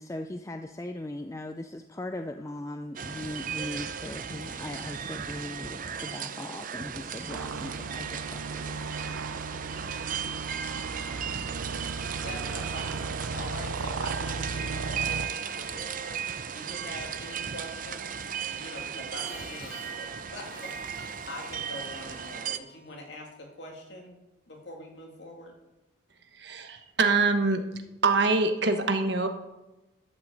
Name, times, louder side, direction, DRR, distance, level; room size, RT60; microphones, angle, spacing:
voice 1, 0.0-8.8, left 1 dB, 15° left, 7 dB, 0.4 m, -39 dB
sound 1, 3.0-22.6, right 7 dB, 45° right, 0.6 m, -36 dB
sound 2, 7.3-15.3, right 4 dB, 90° right, 0.6 m, -36 dB
voice 2, 12.2-16.2 16.5-18.1 18.5-24.2 24.5-25.5, left 1 dB, 65° left, 0 dB, 2.8 m, -43 dB
Harmonica, 19.0-23.6, left 2 dB, 40° left, 3.7 m, -51 dB
voice 3, 26.3-27.6 28.0-29.3, right 3 dB, 60° right, 6 dB, 1.2 m, -24 dB
12.0 x 6.0 x 7.8 m, 1.0 s
head